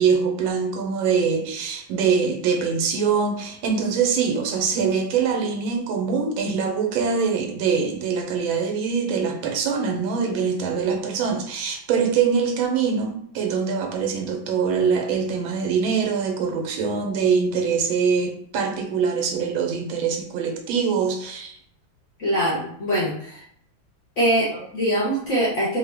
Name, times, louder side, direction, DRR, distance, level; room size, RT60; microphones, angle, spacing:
voice 1, 0.0-21.6 24.5-24.6, right 6 dB, 80° right, 2 dB, 1.5 m, -23 dB
voice 2, 22.2-23.4 24.2-25.8, equal, 55° left, -6 dB, 0.9 m, -23 dB
3.6 x 2.1 x 3.3 m, 0.66 s
omnidirectional pair, 2.1 m